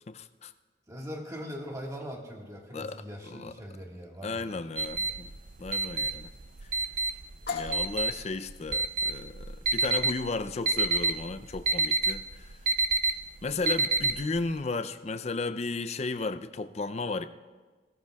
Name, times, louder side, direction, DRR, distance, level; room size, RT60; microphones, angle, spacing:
voice 1, 0.1-0.5 2.7-3.0 3.3-3.5 4.2-5.3 5.6-6.3 7.5-12.5 13.4-17.2, left 3 dB, 35° left, 0.5 m, -34 dB
voice 2, 0.9-4.9, equal, 20° right, 1.6 m, -41 dB
sound 1, 4.8-14.5, right 3 dB, 45° right, 0.5 m, -29 dB
sound 2, 7.5-15.1, left 4 dB, 65° left, 1.8 m, -44 dB
19.5 x 16.0 x 2.3 m
head